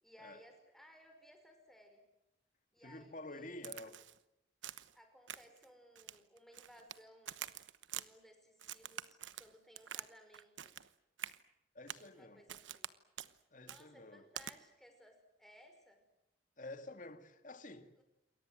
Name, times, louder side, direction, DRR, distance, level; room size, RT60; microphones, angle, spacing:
voice 1, 0.0-2.0 2.7-3.5 4.9-7.4 7.9-10.8 12.1-12.9 13.6-16.0 18.0-18.1, equal, ahead, 5.6 m, -61 dB
voice 2, 2.8-4.0 11.7-12.4 13.5-14.3 16.6-18.0, left 2 dB, 45° left, 2.2 m, -50 dB
Crack, 3.6-4.2 4.6-4.9 5.3-5.6 6.0-7.0 7.3-8.1 8.6-10.1 10.3-10.9 11.2-11.4 11.9-12.1 12.5-12.9 13.2-13.3 13.7-13.8 14.4-14.5, right 10 dB, 85° right, 1.1 m, -46 dB
28.5 x 22.5 x 7.9 m
head